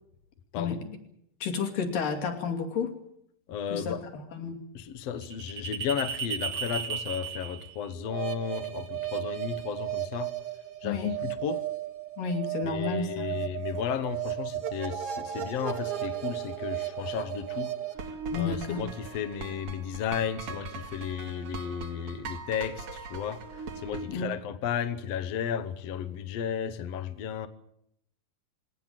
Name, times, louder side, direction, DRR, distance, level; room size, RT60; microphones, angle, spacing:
voice 1, 0.6-1.0 1.4-2.9 3.7-4.6 10.8-11.2 12.2-13.4 18.3-18.9 24.1-24.3, left 5 dB, 85° left, 4.3 m, -31 dB
voice 2, 3.5-4.1 4.7-10.3 10.8-11.6 12.6-17.7 18.0-27.5, left 8 dB, 60° left, 2.0 m, -34 dB
sound 1, 5.2-24.2, right 10 dB, 50° right, 2.3 m, -36 dB
20.5 x 18.0 x 9.1 m
omnidirectional pair, 3.8 m